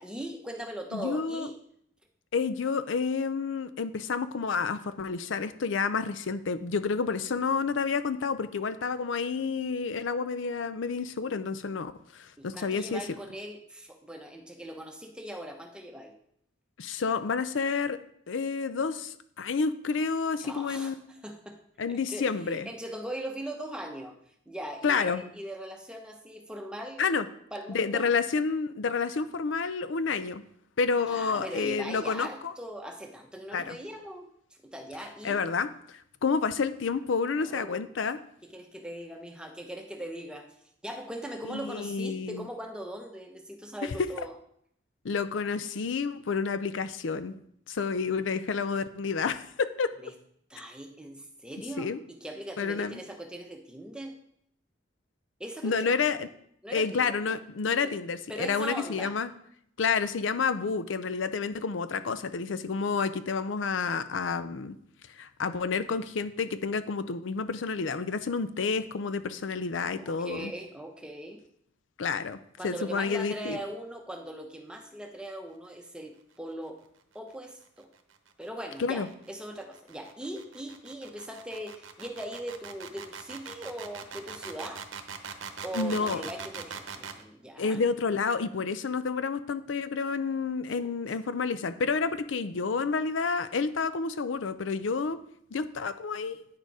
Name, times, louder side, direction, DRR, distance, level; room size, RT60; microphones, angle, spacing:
voice 1, 0.0-1.6 12.4-16.1 20.4-21.6 22.1-24.2 24.5-27.1 27.5-28.1 31.0-34.3 34.6-35.4 37.4-37.9 38.4-40.5 40.8-44.3 50.0-50.1 50.5-54.2 55.4-55.7 56.6-57.4 57.8-57.9 58.3-59.2 69.8-71.4 72.6-76.8 77.1-77.9 78.4-84.8 85.6-87.8, right 1 dB, 5° right, 3 dB, 0.9 m, -40 dB
voice 2, 0.9-1.5 2.3-13.0 16.8-18.0 18.3-21.0 21.8-22.7 24.8-25.2 27.0-27.3 27.7-30.4 30.8-32.5 33.5-33.8 35.2-38.2 41.5-42.5 43.8-43.9 45.0-47.3 47.7-49.9 51.8-52.0 52.6-53.0 55.6-56.2 56.7-59.3 59.8-64.8 65.2-70.5 72.0-73.6 78.8-79.1 85.7-86.2 87.6-95.2 95.5-96.5, left 5 dB, 70° left, 12 dB, 0.5 m, -29 dB
sound 1, 78.0-87.2, right 6 dB, 75° right, 0.9 m, -42 dB
9.5 x 6.7 x 4.8 m, 0.69 s
head